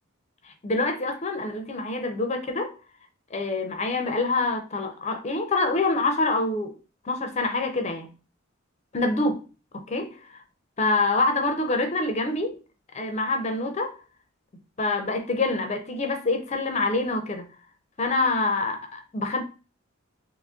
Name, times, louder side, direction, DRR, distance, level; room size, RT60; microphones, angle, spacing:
voice 1, 0.6-2.7 3.3-6.8 7.0-8.1 8.9-9.4 9.7-10.2 10.8-12.5 12.9-13.9 14.8-17.5 18.0-19.4, left 3 dB, 35° left, 0.4 m, -26 dB
2.9 x 2.5 x 3.5 m
head